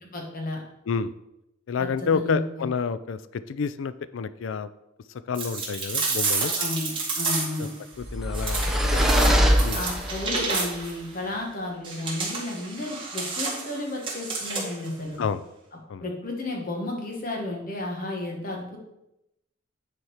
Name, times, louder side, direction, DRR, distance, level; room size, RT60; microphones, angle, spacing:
voice 1, 0.1-0.6 1.8-2.4 6.6-7.7 8.9-9.4 9.7-15.2 16.0-18.8, left 2 dB, 50° left, 0 dB, 1.8 m, -32 dB
voice 2, 1.7-4.7 5.3-6.5 7.6-7.7 8.0-9.0 9.6-9.8 15.2-15.4 15.9-16.0, left 5 dB, 80° left, 14 dB, 0.4 m, -29 dB
sound 1, 5.3-7.7 8.3-11.0 11.8-14.9, right 3 dB, 25° right, 2.0 m, -30 dB
sound 2, 8.0-10.4, equal, ahead, 0.8 m, -22 dB
9.3 x 4.4 x 4.8 m, 0.88 s
head